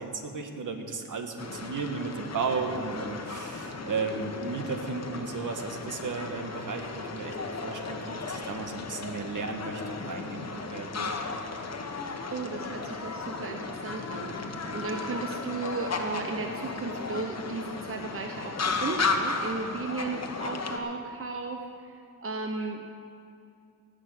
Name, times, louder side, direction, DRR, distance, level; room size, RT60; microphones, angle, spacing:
voice 1, 0.0-11.2, right 4 dB, 60° right, 4 dB, 1.5 m, -34 dB
sound 1, 1.4-20.8, left 4 dB, 45° left, 1.3 m, -35 dB
voice 2, 12.3-22.8, right 3 dB, 40° right, 3 dB, 0.9 m, -35 dB
18.0 x 6.5 x 8.2 m, 2.6 s
wide cardioid pair, 100°, 35 cm